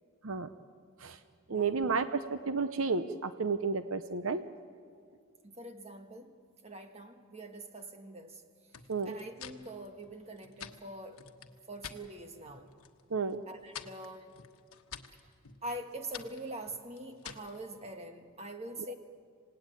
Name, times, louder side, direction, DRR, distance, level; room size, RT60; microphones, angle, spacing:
voice 1, 1.5-4.4 8.9-9.1 13.1-13.4, right 4 dB, 70° right, 10 dB, 0.7 m, -32 dB
voice 2, 5.4-6.4 6.6-8.4 9.0-11.2 11.7-12.7 13.5-14.4 15.6-18.9, right 1 dB, 30° right, 6 dB, 1.6 m, -44 dB
sound 1, 8.7-12.0 12.4-13.0 13.3-17.6, left 8 dB, 75° left, 1.3 m, -49 dB
27.0 x 18.0 x 9.1 m, 2.1 s
head